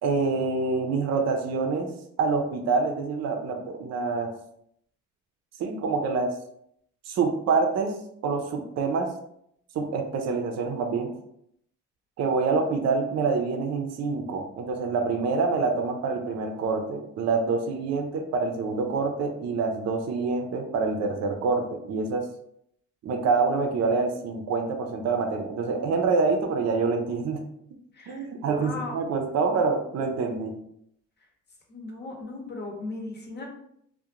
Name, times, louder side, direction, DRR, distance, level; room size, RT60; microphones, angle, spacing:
voice 1, 0.0-1.9 2.2-4.4 5.6-6.3 7.1-7.9 8.2-9.1 9.7-11.1 12.2-22.3 23.0-27.4 28.1-30.5, right 4 dB, 60° right, 4 dB, 0.5 m, -26 dB
voice 2, 27.9-29.0 31.7-33.5, left 3 dB, 35° left, 0 dB, 0.8 m, -37 dB
2.3 x 2.1 x 2.8 m, 0.72 s
cardioid pair, 90°, 30 cm